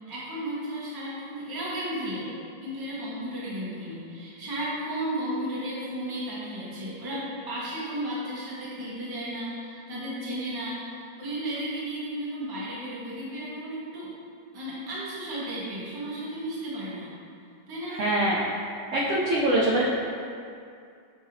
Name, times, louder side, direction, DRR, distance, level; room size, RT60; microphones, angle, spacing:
voice 1, 0.1-14.1 14.5-17.1 17.7-18.0, right 1 dB, 30° right, -8 dB, 0.4 m, -34 dB
voice 2, 18.0-18.4 18.9-19.8, right 1 dB, 80° right, -6 dB, 0.6 m, -23 dB
6.7 x 2.8 x 2.6 m, 2.4 s
omnidirectional pair, 1.9 m